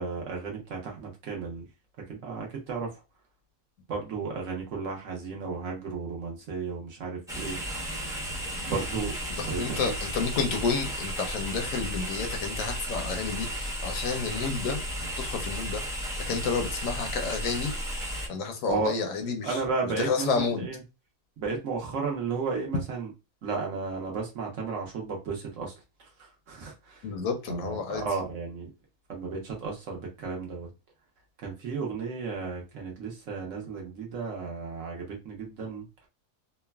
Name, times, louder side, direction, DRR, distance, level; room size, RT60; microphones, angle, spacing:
voice 1, 0.0-1.7 2.1-2.9 3.9-7.6 8.6-9.1 9.4-10.1 18.7-18.9 19.4-20.8 21.4-23.1 23.4-25.7 26.0-27.1 27.5-28.7 29.1-30.7 31.4-35.9, right 4 dB, 60° right, 1.1 m, -33 dB
sound 1, 7.3-18.3, equal, 5° right, 0.3 m, -34 dB
voice 2, 9.4-14.8 15.2-15.8 16.2-17.7 18.3-19.6 20.0-20.7 27.0-28.1, left 5 dB, 70° left, 0.9 m, -30 dB
3.1 x 2.1 x 2.2 m
omnidirectional pair, 1.6 m